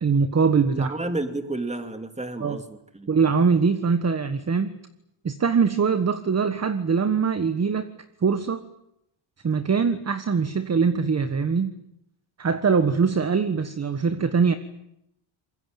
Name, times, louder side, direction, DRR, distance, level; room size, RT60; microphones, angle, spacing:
voice 1, 0.0-0.9 2.4-2.6 3.1-4.7 5.2-7.9 8.2-8.6 9.4-11.7 12.4-14.6, right 5 dB, 30° right, 10 dB, 1.5 m, -22 dB
voice 2, 0.7-3.1, right 2 dB, 15° right, 8 dB, 2.8 m, -31 dB
25.5 x 22.0 x 9.0 m, 0.81 s
cardioid pair, 100°, 49 cm